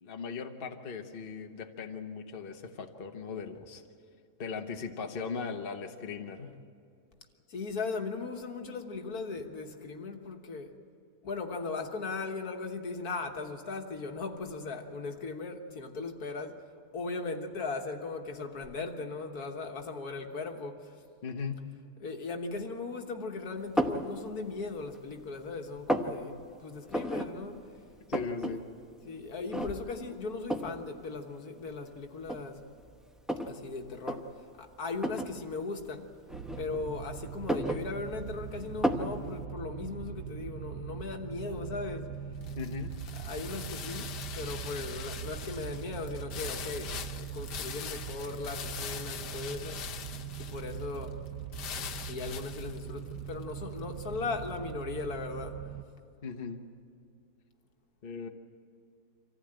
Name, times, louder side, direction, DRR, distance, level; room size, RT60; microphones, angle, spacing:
voice 1, 0.0-3.8 4.4-6.5 21.2-21.7 28.1-28.6 42.6-43.0 56.2-56.6 58.0-58.3, left 5 dB, 40° left, 1.1 m, -38 dB
voice 2, 7.5-10.7 11.2-16.6 16.9-21.0 22.0-27.7 29.0-32.6 33.4-34.3 34.6-36.1 36.6-42.1 43.1-49.8 50.4-51.2 52.0-55.8, left 3 dB, 65° left, 1.8 m, -38 dB
sound 1, 23.8-24.1 24.6-25.3 25.5-26.1 26.9-27.3 27.6-27.7 27.9-28.5 28.9-29.0 29.5-30.0 30.5-30.8 31.6-31.7 32.2-33.6 34.0-34.2 35.0-35.3 36.3-37.0 37.3-38.3 38.8-39.1, equal, ahead, 0.7 m, -31 dB
sound 2, 36.3-55.8, right 9 dB, 85° right, 1.3 m, -41 dB
sound 3, 41.6-54.7, left 8 dB, 80° left, 1.5 m, -43 dB
25.5 x 15.0 x 8.9 m
omnidirectional pair, 1.8 m